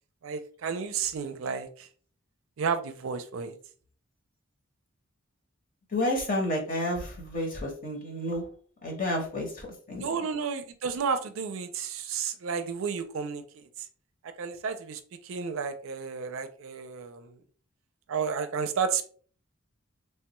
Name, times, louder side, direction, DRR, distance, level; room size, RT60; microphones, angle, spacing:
voice 1, 0.2-1.9 2.6-3.6 10.0-13.7 14.2-17.4 18.1-19.1, right 6 dB, 70° right, 0.4 m, -32 dB
voice 2, 5.9-8.4 8.8-10.0, left 1 dB, 40° left, 0.9 m, -30 dB
3.2 x 2.2 x 3.0 m
head